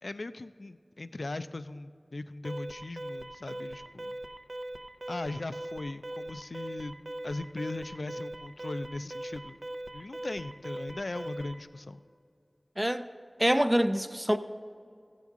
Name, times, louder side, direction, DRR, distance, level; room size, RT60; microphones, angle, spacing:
voice 1, 0.0-4.2 5.1-6.9 7.2-9.6 9.9-12.0, left 2 dB, 80° left, 12 dB, 0.3 m, -39 dB
Alarm, 2.4-11.7, right 1 dB, 65° right, 0.6 m, -41 dB
voice 2, 13.4-14.4, equal, 10° right, 10 dB, 0.4 m, -25 dB
14.0 x 8.3 x 3.6 m, 2.3 s
wide cardioid pair, 50°, 0 cm